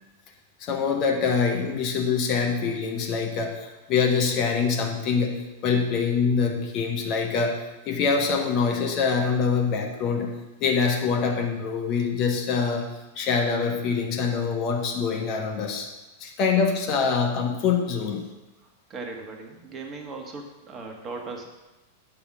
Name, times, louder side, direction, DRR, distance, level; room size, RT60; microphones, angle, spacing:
voice 1, 0.6-5.3 5.6-7.6 7.9-10.3 10.6-12.9 13.2-15.9 16.2-18.2, left 5 dB, 35° left, 2 dB, 1.4 m, -24 dB
voice 2, 18.6-21.5, right 3 dB, 25° right, 2 dB, 1.5 m, -38 dB
8.5 x 5.6 x 6.2 m, 1.1 s
figure-of-eight pair, 95°, 0 cm